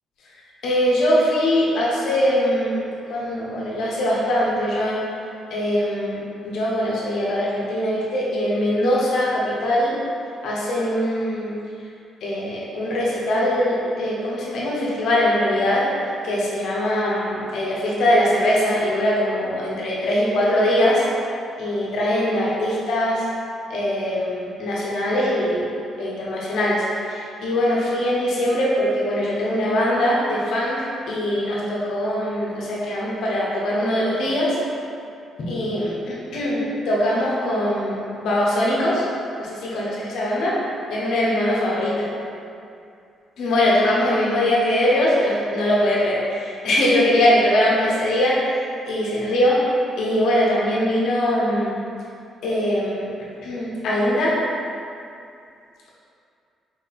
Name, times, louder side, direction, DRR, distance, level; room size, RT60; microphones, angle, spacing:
voice 1, 0.6-5.0 5.5-10.0 10.4-11.5 12.2-15.9 16.2-21.0 21.6-23.3 23.7-25.7 26.0-34.6 35.4-39.1 39.4-40.6 40.9-41.9 43.4-48.4 48.8-49.6 50.0-51.8 52.4-53.0 53.4-54.4, left 1 dB, 75° left, -5 dB, 1.1 m, -22 dB
4.6 x 2.8 x 4.1 m, 2.5 s
cardioid pair, 90°, 0 cm